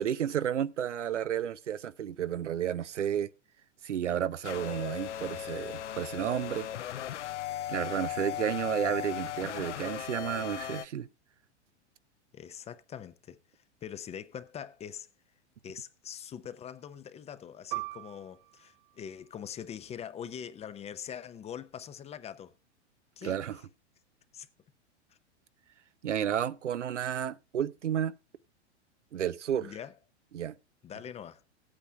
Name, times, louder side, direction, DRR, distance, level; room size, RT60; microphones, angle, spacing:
voice 1, 0.0-3.3 3.8-6.7 7.7-11.1 23.2-23.6 26.0-28.1 29.1-29.7 30.3-30.5, right 9 dB, 85° right, 0.7 m, -32 dB
sound 1, 4.4-10.9, left 12 dB, 80° left, 0.6 m, -37 dB
voice 2, 12.3-13.4 13.8-15.1 15.6-22.5 23.2-23.4 24.3-24.5 29.6-29.9 30.8-31.4, left 8 dB, 20° left, 0.6 m, -43 dB
Piano, 17.7-22.7 23.1-23.2 24.0-24.4, right 25 dB, 35° right, 0.4 m, -44 dB
17.0 x 8.7 x 2.3 m
hypercardioid pair, 100°, 35 cm